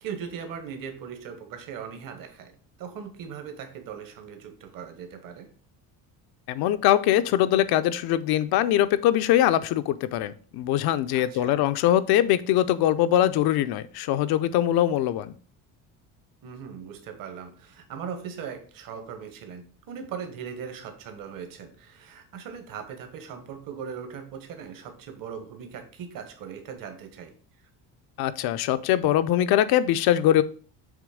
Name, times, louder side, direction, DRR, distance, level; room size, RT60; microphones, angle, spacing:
voice 1, 0.0-2.5 2.8-5.5 11.1-11.6 16.4-27.3, right 7 dB, 60° right, 7 dB, 1.3 m, -39 dB
voice 2, 6.5-15.3 28.2-30.4, left 12 dB, 70° left, 13 dB, 0.6 m, -22 dB
7.3 x 3.1 x 4.9 m, 0.42 s
cardioid pair, 140°, 39 cm